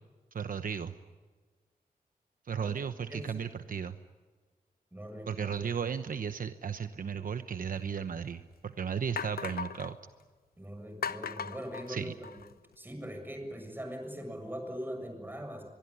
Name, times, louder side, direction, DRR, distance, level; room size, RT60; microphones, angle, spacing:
voice 1, 0.3-0.9 2.4-3.9 5.3-10.0 11.9-12.1, right 7 dB, 65° right, 10 dB, 1.0 m, -35 dB
voice 2, 3.1-3.4 4.9-5.5 10.6-12.4 12.8-15.6, equal, 15° right, 4 dB, 7.0 m, -41 dB
sound 1, 7.8-7.9 8.5-8.6 9.2-9.9 11.0-12.5, left 6 dB, 85° left, 0.9 m, -38 dB
24.0 x 23.0 x 9.9 m, 1.4 s
wide cardioid pair, 125°, 15 cm